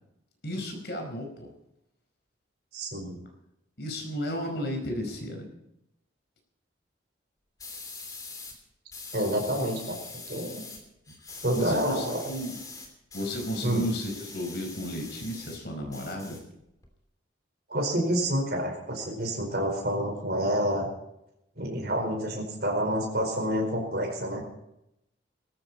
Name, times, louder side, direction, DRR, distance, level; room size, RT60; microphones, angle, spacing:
voice 1, 0.4-1.5 3.8-5.4 11.3-12.6 13.1-16.4, equal, 60° left, 3 dB, 4.9 m, -33 dB
voice 2, 2.7-3.2 9.1-10.0 10.3-10.6 11.4-12.3 13.6-13.8 17.7-20.9 21.6-24.4, equal, 55° right, 0 dB, 4.7 m, -28 dB
sound 1, 7.6-8.6 8.9-10.8 11.1-15.6 15.9-16.9, left 3 dB, 20° left, 2.9 m, -43 dB
18.5 x 14.5 x 4.3 m, 0.83 s
head